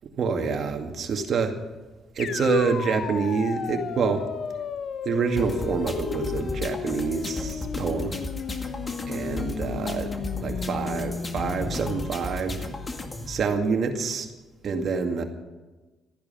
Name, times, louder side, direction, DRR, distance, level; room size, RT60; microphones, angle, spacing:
voice 1, 0.2-1.6 2.2-4.3 5.1-8.2 9.1-12.7 13.3-14.3 14.6-15.2, right 5 dB, 60° right, 5 dB, 2.2 m, -27 dB
sound 1, 2.2-12.1, left 7 dB, 60° left, 0.9 m, -34 dB
sound 2, 5.4-13.4, left 3 dB, 30° left, 2.0 m, -34 dB
14.0 x 10.5 x 9.2 m, 1.2 s
supercardioid pair, 75°, 0 cm